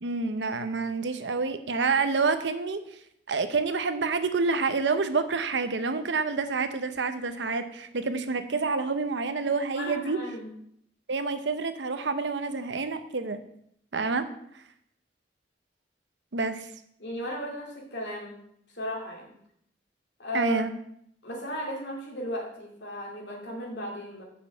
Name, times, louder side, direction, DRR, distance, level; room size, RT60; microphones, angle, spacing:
voice 1, 0.0-2.8 3.3-10.2 11.1-13.4 13.9-14.2 16.3-16.7 20.3-20.7, right 4 dB, 80° right, 10 dB, 0.8 m, -28 dB
voice 2, 9.7-10.5 17.0-18.4 18.8-19.3 20.2-20.6 21.2-24.2, equal, 70° left, -1 dB, 2.5 m, -35 dB
6.6 x 5.5 x 7.1 m, 0.72 s
head